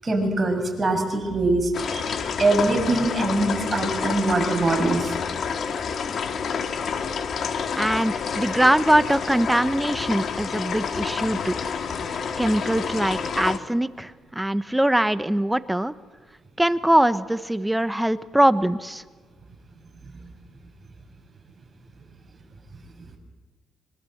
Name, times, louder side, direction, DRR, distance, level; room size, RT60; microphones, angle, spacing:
voice 1, 0.0-5.1, right 2 dB, 30° right, 3 dB, 6.8 m, -23 dB
sound 1, 1.7-13.6, left 6 dB, 55° left, 2.1 m, -29 dB
voice 2, 7.8-11.6 12.4-15.9 16.6-19.0, right 1 dB, 5° right, 13 dB, 1.1 m, -22 dB
25.5 x 23.5 x 8.0 m, 1.4 s
cardioid pair, 90°, 0 cm